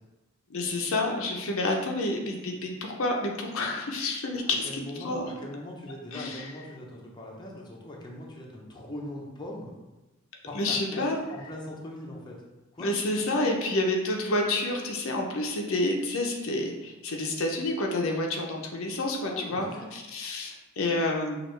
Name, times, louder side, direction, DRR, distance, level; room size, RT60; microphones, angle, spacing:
voice 1, 0.5-5.3 6.1-6.4 10.5-11.2 12.8-21.4, left 2 dB, 65° left, 1 dB, 0.6 m, -29 dB
voice 2, 4.3-9.7 10.5-12.4 12.7-12.9 19.2-19.9, left 1 dB, 20° left, -2 dB, 0.7 m, -40 dB
6.2 x 2.4 x 3.2 m, 1.1 s
head